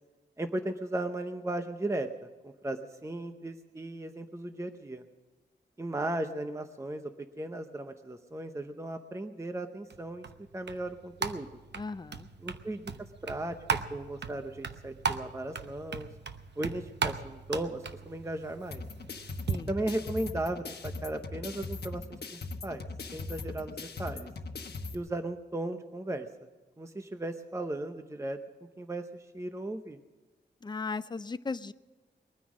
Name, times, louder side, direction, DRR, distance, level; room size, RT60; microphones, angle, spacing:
voice 1, 0.4-2.1 2.4-5.0 5.8-7.0 7.4-10.3 10.5-11.5 12.4-13.6 13.9-16.1 16.6-18.8 19.7-22.8 23.1-24.3 24.9-26.3 26.8-28.4 28.8-30.0, right 1 dB, 15° right, 7 dB, 0.8 m, -36 dB
sound 1, 9.9-19.6, right 5 dB, 70° right, 0.9 m, -38 dB
voice 2, 11.7-12.3 19.5-19.7 30.6-31.7, left 4 dB, 25° left, 14 dB, 0.5 m, -36 dB
sound 2, 18.7-24.9, left 3 dB, 65° left, 1.1 m, -40 dB
21.5 x 9.8 x 6.3 m, 1.3 s
wide cardioid pair, 135°, 18 cm